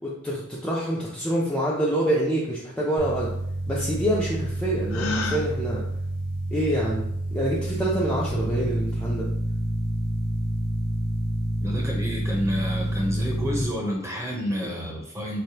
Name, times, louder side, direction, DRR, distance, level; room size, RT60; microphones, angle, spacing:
voice 1, 0.0-3.3 3.7-5.8 6.5-7.1 7.3-9.3 14.6-14.7, right 1 dB, 5° left, -6 dB, 0.5 m, -26 dB
sound 1, 3.0-13.6, right 1 dB, 65° right, 1.0 m, -28 dB
Gasp, 4.9-5.5, left 3 dB, 70° left, 0.5 m, -28 dB
voice 2, 11.6-15.4, equal, 15° right, -1 dB, 0.8 m, -29 dB
4.3 x 3.3 x 2.8 m, 0.76 s
head